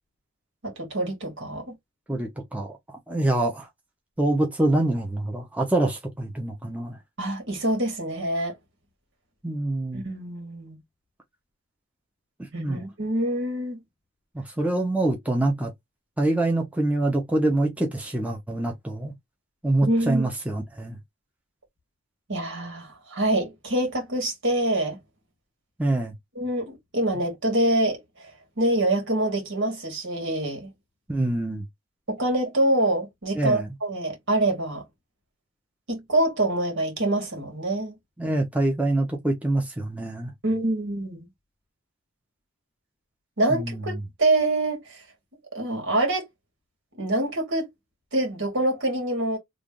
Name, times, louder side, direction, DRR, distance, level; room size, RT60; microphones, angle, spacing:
voice 1, 0.6-1.7 7.2-8.5 9.9-10.8 12.5-13.8 19.8-20.3 22.3-25.0 26.4-28.0 28.6-30.7 32.1-34.8 35.9-37.9 40.4-41.2 43.4-45.0 45.5-46.3 47.0-47.7 48.1-49.4, right 1 dB, 65° right, 2.0 m, -25 dB
voice 2, 2.1-2.7 3.1-3.7 4.2-7.0 9.4-10.1 12.6-12.8 14.3-15.7 16.2-19.1 19.6-21.0 25.8-26.1 31.1-31.7 33.4-33.7 38.2-40.3 43.5-44.0, right 2 dB, 5° right, 0.8 m, -25 dB
3.3 x 2.5 x 3.7 m
head